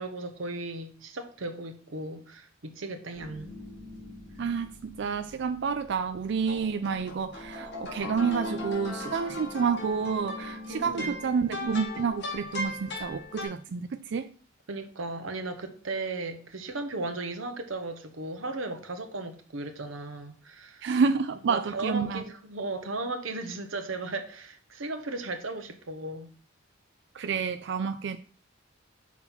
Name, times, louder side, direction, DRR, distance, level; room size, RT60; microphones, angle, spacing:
voice 1, 0.0-3.5 10.7-11.2 14.7-20.9 21.5-26.3, right 2 dB, 80° right, 1.0 m, -36 dB
sound 1, 3.1-13.5, left 2 dB, 60° left, 1.9 m, -39 dB
voice 2, 4.4-14.3 20.8-22.2 27.1-28.2, right 5 dB, 60° right, 0.4 m, -29 dB
5.8 x 4.2 x 5.9 m
head